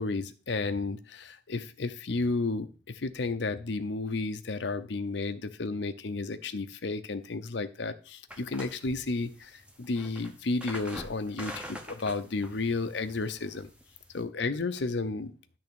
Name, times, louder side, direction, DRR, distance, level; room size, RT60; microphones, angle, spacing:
voice 1, 0.0-13.7 14.1-15.4, left 3 dB, 65° left, 10 dB, 0.7 m, -32 dB
sound 1, 8.3-14.2, equal, 5° right, 0.9 m, -45 dB
10.5 x 3.5 x 6.9 m, 0.38 s
head